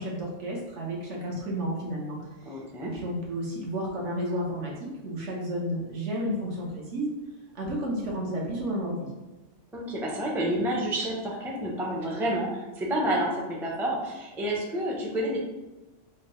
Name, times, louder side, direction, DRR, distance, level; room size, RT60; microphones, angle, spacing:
voice 1, 0.0-2.2 2.4-2.5 2.8-7.1 7.5-9.1, equal, 75° right, -3 dB, 1.2 m, -32 dB
voice 2, 2.5-2.9 9.7-15.4, right 1 dB, 5° right, -3 dB, 0.3 m, -29 dB
4.5 x 2.2 x 3.0 m, 1.1 s
omnidirectional pair, 1.2 m